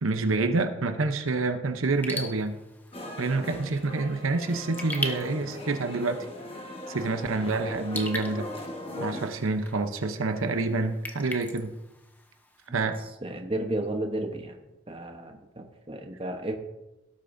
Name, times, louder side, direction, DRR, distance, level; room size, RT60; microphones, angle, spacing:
voice 1, 0.0-2.6 3.2-6.3 6.9-8.5 9.0-11.7 12.7-13.0, right 3 dB, 80° right, 7 dB, 0.8 m, -27 dB
Raindrop / Drip, 1.9-12.7, left 1 dB, 10° left, 0.8 m, -41 dB
sound 1, 2.9-9.3, left 1 dB, 25° left, 1.2 m, -39 dB
voice 2, 13.2-14.6 14.9-16.6, right 1 dB, 25° right, 4 dB, 1.0 m, -33 dB
17.0 x 8.5 x 2.7 m, 0.98 s
head